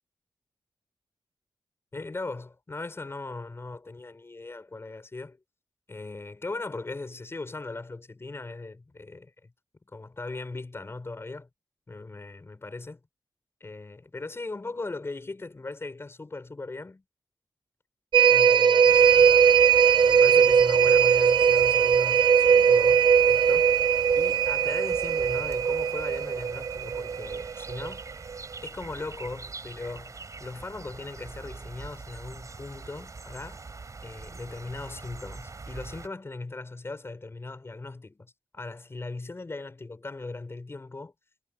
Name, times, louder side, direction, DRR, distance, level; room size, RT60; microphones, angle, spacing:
voice 1, 1.9-5.4 5.9-9.5 9.9-11.5 11.9-13.0 13.6-17.0 18.3-19.4 20.0-23.7 24.1-28.0 28.6-33.7 34.0-41.1, left 3 dB, 30° left, 6.4 m, -39 dB
sound 1, 18.1-27.9 28.3-28.4, right 7 dB, 70° right, 1.2 m, -20 dB
sound 2, 18.9-36.1, right 4 dB, 40° right, 5.7 m, -44 dB
wide cardioid pair, 105°, 8 cm